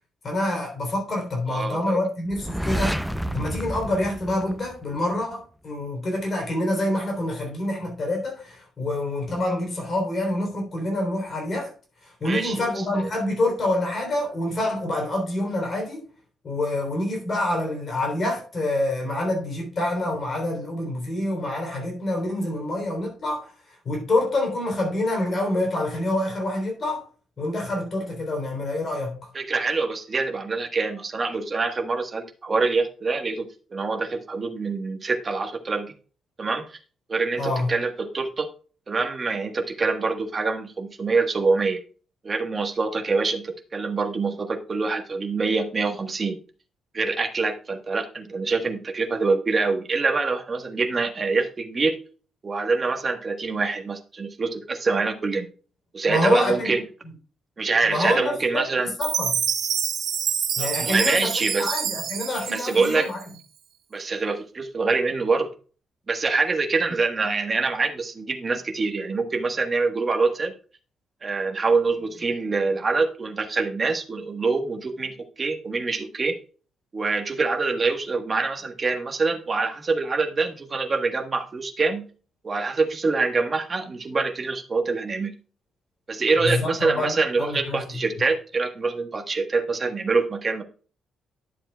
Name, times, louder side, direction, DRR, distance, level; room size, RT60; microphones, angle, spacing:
voice 1, 0.2-3.0 3.3-11.7 12.0-16.0 16.4-27.0 27.4-29.3 37.4-37.7 56.1-56.8 57.9-59.3 60.6-61.3 61.6-63.2 86.4-87.9, left 1 dB, 35° left, 3.4 m, -27 dB
voice 2, 1.5-2.0 12.2-13.1 29.3-35.9 36.4-36.8 37.1-38.5 38.9-41.8 42.2-46.4 46.9-52.0 52.4-55.5 55.9-56.8 57.6-58.9 60.6-61.7 62.5-63.1 63.9-65.5 66.1-70.5 71.2-76.4 76.9-82.0 82.4-85.3 86.1-90.6, right 4 dB, 25° right, 1.3 m, -25 dB
sound 1, 2.3-5.2, equal, ahead, 0.5 m, -30 dB
Chime, 59.0-63.4, right 8 dB, 65° right, 1.6 m, -27 dB
11.0 x 7.4 x 2.3 m
cardioid pair, 155°, 0 cm